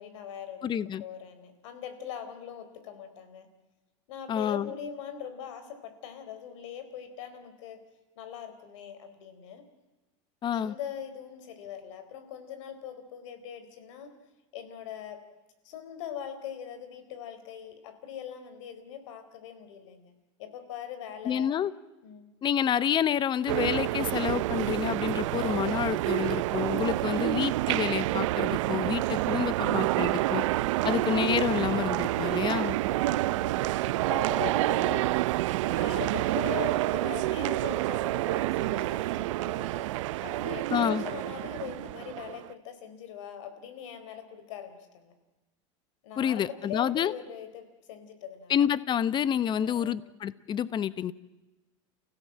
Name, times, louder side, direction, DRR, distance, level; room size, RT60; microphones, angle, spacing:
voice 1, 0.0-0.7 1.0-3.5 4.1-7.8 8.2-9.7 10.5-14.2 14.5-15.2 15.6-20.1 20.4-21.5 22.0-22.3 32.9-33.7 34.1-35.1 35.6-39.9 40.2-45.1 46.0-48.5 49.5-50.0, left 9 dB, 75° left, 9 dB, 4.2 m, -41 dB
voice 2, 0.6-1.0 4.3-4.7 10.4-10.7 21.2-21.7 22.4-30.4 30.8-32.8 40.7-41.0 46.2-47.1 48.5-51.1, left 9 dB, 30° left, 17 dB, 0.9 m, -28 dB
sound 1, 23.5-42.5, right 17 dB, 80° right, 0.7 m, -28 dB
30.0 x 16.5 x 7.5 m, 1.1 s
supercardioid pair, 120°, 16 cm